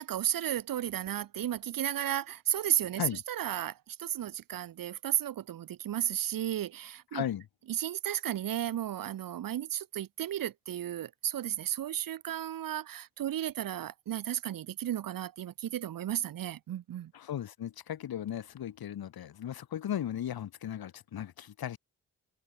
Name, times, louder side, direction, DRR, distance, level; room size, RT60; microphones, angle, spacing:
voice 1, 0.0-3.0 3.3-7.2 7.7-17.1, right 11 dB, 70° right, 0.7 m, -34 dB
voice 2, 7.1-7.5 17.1-21.8, left 10 dB, 90° left, 2.7 m, -36 dB
cardioid pair, 55°, 35 cm